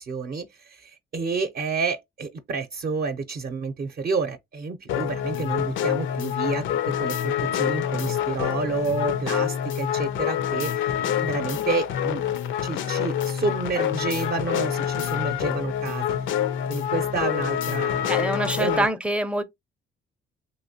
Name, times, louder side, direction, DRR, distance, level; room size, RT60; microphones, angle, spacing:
voice 1, 0.0-6.7 7.0-10.9 11.2-12.2 12.6-16.0 16.7-18.2 18.6-18.9, right 4 dB, 50° right, 0.6 m, -29 dB
sound 1, 4.9-18.9, left 10 dB, 75° left, 0.5 m, -26 dB
voice 2, 18.1-19.4, right 1 dB, 5° right, 0.5 m, -25 dB
3.0 x 2.9 x 2.8 m
cardioid pair, 90°, 20 cm